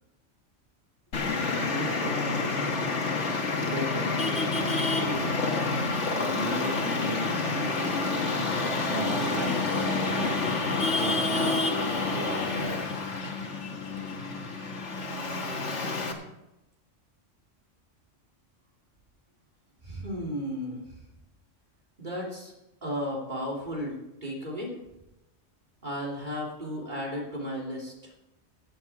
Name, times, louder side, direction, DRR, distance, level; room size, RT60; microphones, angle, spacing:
Traffic noise roadway noise, 1.1-16.1, left 3 dB, 70° left, 1.8 m, -28 dB
voice 1, 1.5-2.8 3.6-5.4 5.7-8.0 8.8-10.4 11.0-11.6 12.1-12.9, right 2 dB, 70° right, 3 dB, 1.8 m, -36 dB
voice 2, 19.8-20.8 22.0-22.5 22.8-24.7 25.8-27.9, equal, 40° right, -3 dB, 3.0 m, -34 dB
14.5 x 9.0 x 4.7 m, 0.94 s
omnidirectional pair, 1.3 m